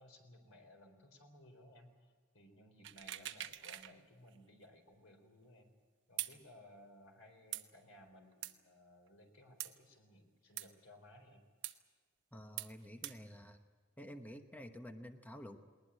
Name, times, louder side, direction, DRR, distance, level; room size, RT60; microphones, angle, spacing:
voice 1, 0.0-5.7 6.1-11.5, left 1 dB, 90° left, 5 dB, 3.9 m, -60 dB
sound 1, 2.8-3.9 4.3-4.4 6.2-6.4 7.5-7.6 8.4-8.5 9.6-9.7 10.6-10.7 11.6-11.8 12.6-12.7 13.0-13.2, right 13 dB, 65° right, 1.0 m, -43 dB
voice 2, 12.3-13.6 14.0-15.6, equal, 10° left, 6 dB, 1.0 m, -50 dB
20.5 x 20.0 x 8.8 m, 1.5 s
head